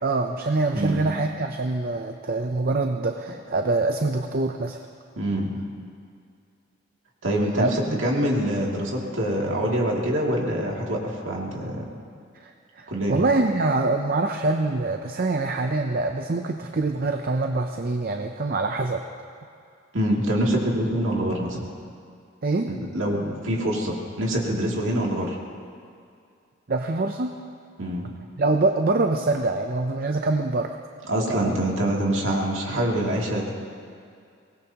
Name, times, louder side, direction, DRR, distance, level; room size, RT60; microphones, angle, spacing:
voice 1, 0.0-4.9 7.6-8.0 12.4-19.0 22.4-22.7 26.7-27.3 28.4-30.8 31.3-31.6, right 3 dB, 45° right, 4 dB, 0.6 m, -25 dB
voice 2, 5.2-5.5 7.2-7.7 8.0-11.9 12.9-13.2 19.9-21.6 22.7-25.4 27.8-28.1 31.1-33.5, right 1 dB, 60° right, -2 dB, 2.7 m, -25 dB
23.5 x 19.0 x 3.0 m, 2.3 s
head